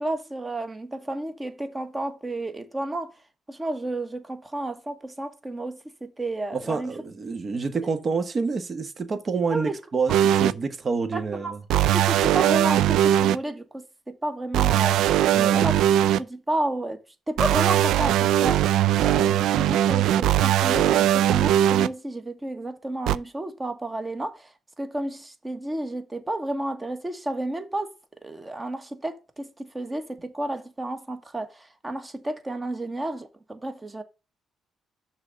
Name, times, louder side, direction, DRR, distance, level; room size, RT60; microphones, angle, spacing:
voice 1, 0.0-3.1 3.5-6.9 9.5-9.8 11.1-11.5 11.9-15.0 15.5-15.8 16.2-17.0 17.3-27.9 28.2-34.0, right 1 dB, 20° right, 1.4 m, -31 dB
voice 2, 6.5-11.6 15.3-15.6, right 4 dB, 40° right, 1.3 m, -28 dB
sound 1, 10.1-10.5 11.7-13.3 14.5-16.2 17.4-21.9 23.1-23.2, right 11 dB, 85° right, 0.3 m, -20 dB
6.3 x 3.9 x 6.2 m
cardioid pair, 90°, 0 cm